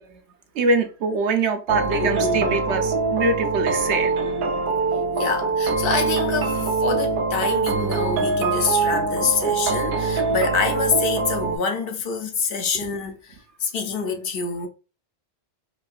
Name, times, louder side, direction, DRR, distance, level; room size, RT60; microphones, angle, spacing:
voice 1, 0.5-4.1, right 3 dB, 80° right, 1.0 m, -23 dB
sound 1, 1.7-11.6, right 4 dB, 60° right, 0.7 m, -23 dB
voice 2, 1.9-2.6 5.2-14.7, left 5 dB, 65° left, 0.7 m, -26 dB
4.3 x 2.6 x 2.3 m
omnidirectional pair, 1.1 m